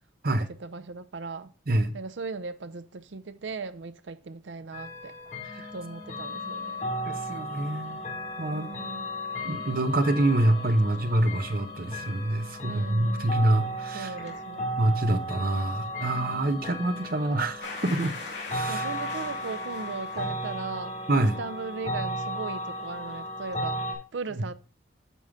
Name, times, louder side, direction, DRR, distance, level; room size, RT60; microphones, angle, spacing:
voice 1, 0.2-1.5 1.9-5.1 5.7-6.9 8.5-9.1 12.6-13.3 13.9-14.9 18.7-24.5, right 4 dB, 85° right, 0.6 m, -38 dB
sound 1, 4.7-23.9, equal, 40° left, 1.8 m, -35 dB
voice 2, 7.1-8.0 8.4-8.7 9.4-14.1 14.8-18.1 18.5-18.8 21.1-21.4, right 1 dB, 50° right, 0.9 m, -26 dB
sound 2, 17.6-20.5, left 3 dB, 70° left, 3.0 m, -40 dB
8.3 x 5.6 x 3.6 m
head